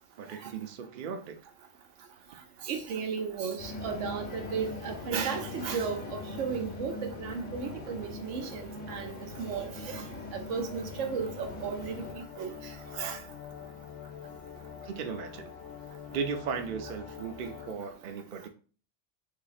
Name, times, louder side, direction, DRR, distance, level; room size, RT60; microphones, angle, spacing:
voice 1, 0.2-1.4 14.8-15.5 16.1-18.5, right 6 dB, 55° right, 0.6 m, -36 dB
voice 2, 2.6-10.0 10.3-12.6 12.9-13.2, right 6 dB, 85° right, 1.0 m, -35 dB
sound 1, 3.6-12.1, left 2 dB, 50° left, 1.0 m, -41 dB
sound 2, 11.4-17.7, left 8 dB, 85° left, 0.9 m, -45 dB
2.8 x 2.8 x 4.0 m
omnidirectional pair, 1.2 m